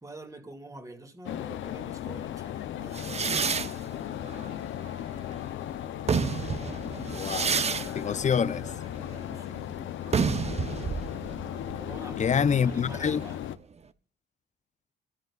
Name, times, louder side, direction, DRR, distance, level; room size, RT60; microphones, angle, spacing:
voice 1, 0.0-3.3 9.1-9.8 11.7-13.5, right 2 dB, 15° right, 2.4 m, -47 dB
sound 1, 1.2-13.6, left 12 dB, 75° left, 0.7 m, -36 dB
sound 2, 2.9-5.4 5.9-13.4, right 5 dB, 35° right, 0.8 m, -31 dB
voice 2, 7.1-7.6 7.9-8.7 12.2-13.2, left 7 dB, 35° left, 0.6 m, -26 dB
28.0 x 13.5 x 2.4 m
cardioid pair, 90°, 20 cm